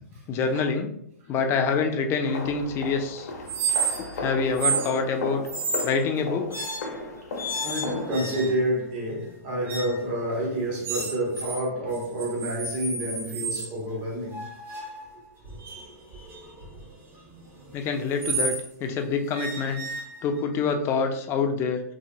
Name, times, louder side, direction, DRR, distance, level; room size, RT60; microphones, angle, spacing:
voice 1, 0.3-1.0 1.3-3.3 4.1-5.4 5.8-6.6 17.7-19.8 20.2-21.8, left 5 dB, 30° left, 0.4 m, -26 dB
sound 1, 2.2-8.6, left 2 dB, 70° left, 0.6 m, -35 dB
sound 2, 3.5-4.2 4.5-4.9 5.5-6.0 6.5-7.0 7.4-8.7 9.7-10.0 10.8-11.6 11.9-13.7 14.3-18.7 19.3-20.5, right 4 dB, 25° right, 0.8 m, -31 dB
voice 2, 7.6-14.4 15.4-15.5, right 1 dB, 45° right, 1.3 m, -29 dB
2.7 x 2.7 x 2.6 m
hypercardioid pair, 120°, 9 cm